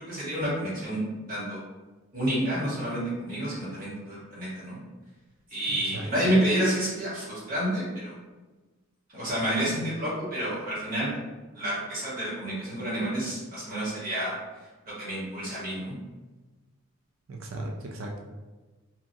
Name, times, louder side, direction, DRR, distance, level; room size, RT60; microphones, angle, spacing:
voice 1, 0.1-1.0 1.3-1.6 2.1-4.8 5.5-8.1 9.1-11.1 11.5-14.3 15.0-15.9, right 1 dB, 40° right, -8 dB, 1.2 m, -29 dB
voice 2, 5.7-6.1 17.3-18.2, right 1 dB, 65° right, 0 dB, 0.3 m, -37 dB
2.8 x 2.3 x 2.6 m, 1.2 s
head